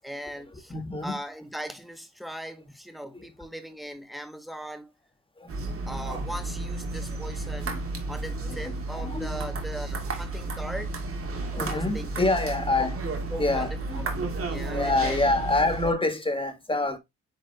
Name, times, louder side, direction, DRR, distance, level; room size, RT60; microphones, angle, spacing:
voice 1, 0.0-0.7 1.0-4.9 5.9-7.8 8.1-10.9 11.7-12.2 12.8-12.9 13.3-14.2 14.5-15.2, equal, ahead, 1.4 m, -39 dB
voice 2, 0.7-1.2 5.6-5.7 8.5-9.3 11.5-13.0 13.4-14.1 14.7-17.0, left 2 dB, 15° left, 1.8 m, -26 dB
sound 1, 5.5-15.9, right 3 dB, 45° right, 2.3 m, -32 dB
9.6 x 3.4 x 3.4 m
cardioid pair, 90°, 30 cm